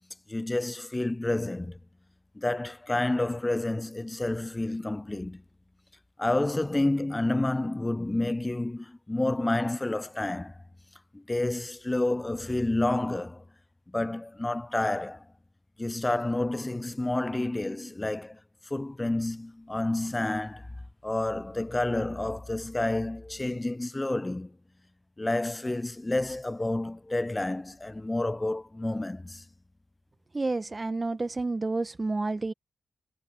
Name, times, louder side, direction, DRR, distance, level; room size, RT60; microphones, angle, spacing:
voice 1, 0.3-1.8 2.3-5.4 6.2-10.6 11.1-13.4 13.9-15.3 15.8-18.4 18.7-20.7 21.0-24.6 25.2-29.4, left 2 dB, 20° left, 0.4 m, -29 dB
voice 2, 30.3-32.5, right 3 dB, 35° right, 1.1 m, -30 dB
supercardioid pair, 40°, 0 cm